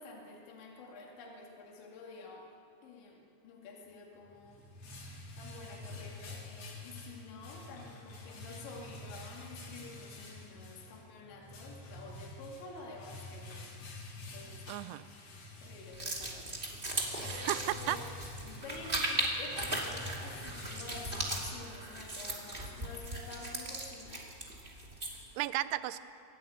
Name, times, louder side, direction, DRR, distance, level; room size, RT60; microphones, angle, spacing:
voice 1, 0.0-2.5 2.8-4.6 5.4-14.6 15.6-16.5 16.8-17.0 17.3-18.1 18.4-24.3, left 3 dB, 75° left, -1 dB, 4.6 m, -49 dB
sound 1, 4.2-22.1, left 2 dB, 40° left, 3.2 m, -47 dB
voice 2, 14.7-15.1 17.2-18.0 25.4-26.0, right 16 dB, 85° right, 14 dB, 2.4 m, -34 dB
sound 2, 15.9-25.3, right 1 dB, 25° right, 1.1 m, -38 dB
24.0 x 12.5 x 9.5 m, 2.5 s
omnidirectional pair, 5.3 m